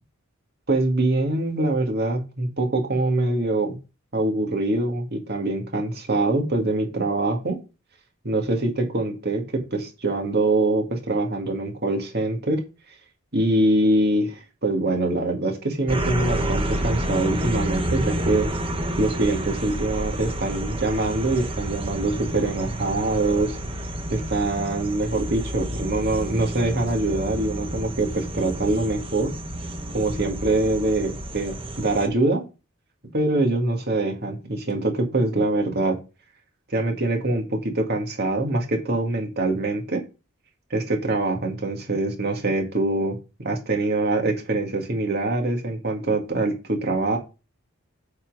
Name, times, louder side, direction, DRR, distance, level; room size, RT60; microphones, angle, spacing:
voice 1, 0.7-3.8 4.1-7.6 8.2-9.4 9.7-12.6 13.3-18.5 19.0-23.6 24.1-29.3 29.9-32.4 33.1-36.0 36.7-40.0 40.7-43.2 43.4-47.2, right 2 dB, 50° right, 2 dB, 2.0 m, -24 dB
sound 1, 15.9-32.1, right 1 dB, 25° right, 1.0 m, -29 dB
8.8 x 4.4 x 4.8 m, 0.30 s
head